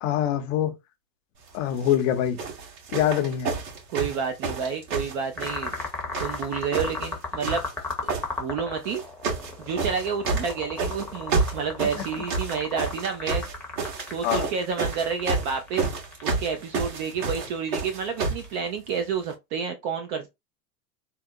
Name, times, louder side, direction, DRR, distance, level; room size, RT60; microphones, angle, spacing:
voice 1, 0.0-0.7 1.5-2.4 2.9-3.5 12.0-12.1 14.2-14.5, left 10 dB, 50° left, 0.7 m, -24 dB
sound 1, 1.7-2.0 2.4-5.9 6.1-7.1 7.4-8.3 8.9-9.5 9.8-18.5 19.3-19.4, right 4 dB, 65° right, 2.0 m, -30 dB
voice 2, 3.9-5.7 6.2-7.6 8.4-9.0 9.6-13.5 14.1-15.9 16.2-20.3, right 6 dB, 30° right, 0.4 m, -29 dB
sound 2, 5.4-18.6, left 4 dB, 5° left, 0.7 m, -35 dB
3.7 x 2.1 x 2.6 m
hypercardioid pair, 120°, 49 cm